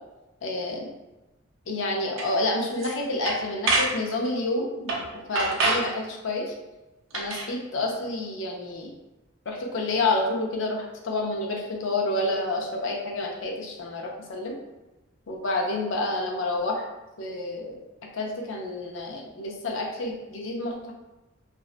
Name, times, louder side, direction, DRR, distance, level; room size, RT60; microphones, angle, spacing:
voice 1, 0.4-0.9 1.7-6.5 7.1-8.9 9.5-14.5 15.3-16.8 17.2-17.8 18.1-20.9, left 2 dB, 60° left, 0 dB, 0.4 m, -29 dB
sound 1, 2.2-2.3 2.7-2.9 3.3-4.0 4.9-5.1 5.4-5.9 7.1-7.5, right 3 dB, 65° right, 0.4 m, -25 dB
2.4 x 2.1 x 2.4 m, 1.0 s
head